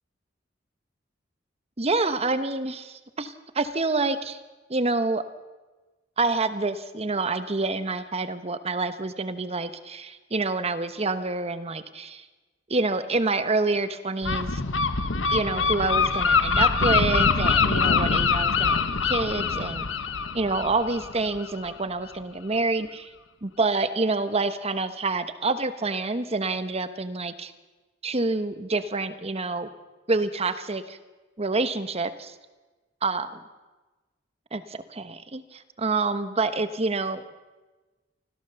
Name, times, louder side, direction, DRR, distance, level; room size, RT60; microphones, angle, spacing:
voice 1, 1.8-4.4 4.7-5.2 6.2-12.3 12.7-14.6 15.3-19.9 20.3-23.1 23.4-27.5 28.0-29.7 30.1-31.0 31.4-32.4 33.0-33.4 34.5-37.2, right 3 dB, 35° right, 12 dB, 1.1 m, -27 dB
Gull seagull, 14.2-21.7, left 5 dB, 85° left, 1.1 m, -24 dB
25.0 x 15.5 x 7.0 m, 1.2 s
head